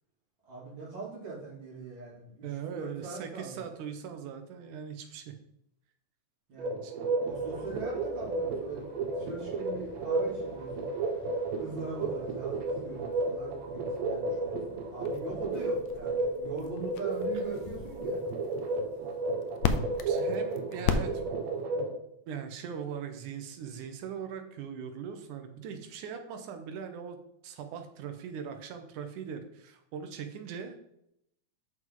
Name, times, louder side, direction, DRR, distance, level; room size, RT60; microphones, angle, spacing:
voice 1, 0.5-2.5 2.7-3.7 6.5-6.7 7.2-10.9 11.6-18.2, right 4 dB, 40° right, -6 dB, 3.7 m, -41 dB
voice 2, 2.4-5.3 6.8-6.9 20.1-21.3 21.7-21.9 22.3-27.2 27.4-30.7, right 7 dB, 90° right, 6 dB, 2.5 m, -40 dB
sound 1, 6.6-21.9, right 2 dB, 65° right, 2.2 m, -33 dB
sound 2, 7.3-21.7, left 6 dB, 75° left, 1.8 m, -39 dB
9.1 x 6.2 x 3.8 m, 0.77 s
omnidirectional pair, 3.4 m